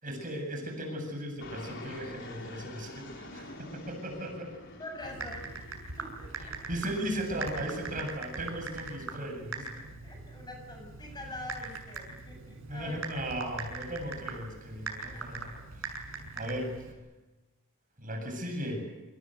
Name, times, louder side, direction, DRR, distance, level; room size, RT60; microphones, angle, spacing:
voice 1, 0.0-4.5 6.7-9.7 12.7-15.8 16.4-16.8 18.0-18.9, equal, 40° right, 4 dB, 7.8 m, -37 dB
Fixed-wing aircraft airplane, 1.4-6.8, left 1 dB, 60° left, 4.2 m, -47 dB
voice 2, 4.8-5.7 6.0-6.6 10.0-13.1 15.3-15.4, left 1 dB, 20° left, 3 dB, 7.6 m, -44 dB
Typing, 5.0-16.9, right 3 dB, 65° right, 6.7 m, -41 dB
28.5 x 26.0 x 8.1 m, 1.1 s
head